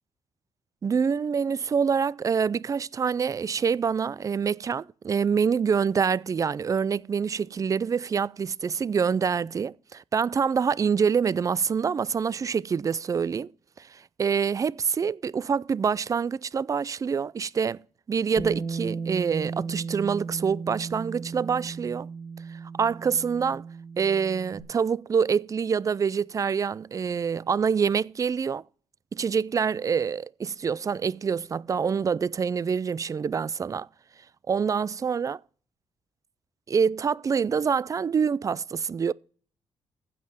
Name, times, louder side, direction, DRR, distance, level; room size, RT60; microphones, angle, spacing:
voice 1, 0.8-13.5 13.8-17.8 18.1-22.1 22.5-23.6 24.0-28.6 29.1-33.9 34.5-35.4 36.7-39.1, right 6 dB, 35° right, 0.4 m, -26 dB
Bass guitar, 18.4-24.6, right 4 dB, 40° left, 1.9 m, -36 dB
15.5 x 5.3 x 5.9 m
cardioid pair, 90°, 10 cm